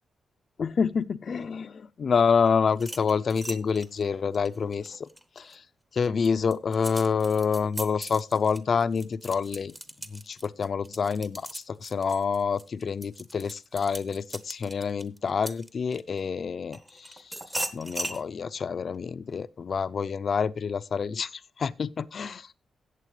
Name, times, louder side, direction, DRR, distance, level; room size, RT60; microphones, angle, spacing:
voice 1, 0.6-5.1 5.4-5.6 5.9-9.8 10.1-17.3 17.7-22.5, left 6 dB, 45° left, 0.5 m, -27 dB
sound 1, 2.7-5.6 6.0-16.2 16.7-18.2, right 1 dB, 10° right, 0.8 m, -39 dB
14.5 x 8.5 x 3.2 m
wide cardioid pair, 140°, 0 cm